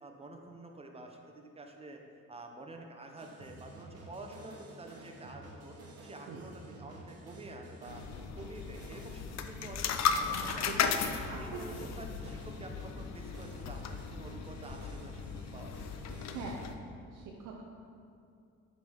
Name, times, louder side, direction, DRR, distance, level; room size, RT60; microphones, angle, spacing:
voice 1, 0.0-2.0 2.3-8.0 8.3-10.9 11.2-15.7, right 2 dB, 20° right, 3 dB, 0.7 m, -49 dB
sound 1, 3.2-16.7, right 2 dB, 55° right, 1.1 m, -51 dB
sound 2, 7.9-16.7, left 7 dB, 60° left, 0.5 m, -36 dB
voice 2, 10.6-11.9 16.3-16.6 17.1-17.6, right 4 dB, 85° right, -2 dB, 0.6 m, -43 dB
7.7 x 4.0 x 3.5 m, 2.5 s
cardioid pair, 90°, 30 cm